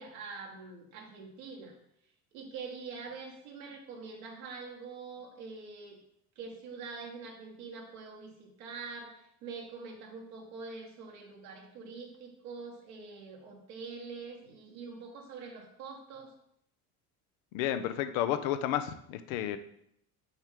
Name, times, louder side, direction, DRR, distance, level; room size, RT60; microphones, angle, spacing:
voice 1, 0.0-1.7 2.3-6.0 6.3-16.3, right 4 dB, 80° right, 0 dB, 1.7 m, -45 dB
voice 2, 17.5-19.6, left 11 dB, 75° left, 10 dB, 0.7 m, -31 dB
6.2 x 5.3 x 3.6 m, 0.71 s
hypercardioid pair, 65°, 43 cm